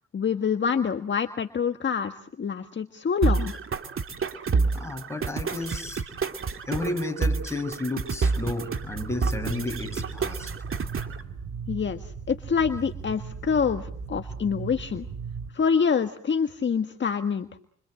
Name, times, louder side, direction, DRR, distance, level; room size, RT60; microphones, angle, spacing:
voice 1, 0.1-3.5 11.7-15.0 15.5-17.5, left 6 dB, 40° left, 7 dB, 1.6 m, -26 dB
sound 1, 3.2-11.2, right 4 dB, 45° right, 2.6 m, -28 dB
voice 2, 4.7-6.0 6.7-10.5, left 2 dB, 10° left, 5 dB, 6.2 m, -32 dB
sound 2, 8.8-15.5, right 6 dB, 75° right, 3.7 m, -37 dB
29.0 x 25.0 x 7.8 m, 0.62 s
cardioid pair, 90°, 30 cm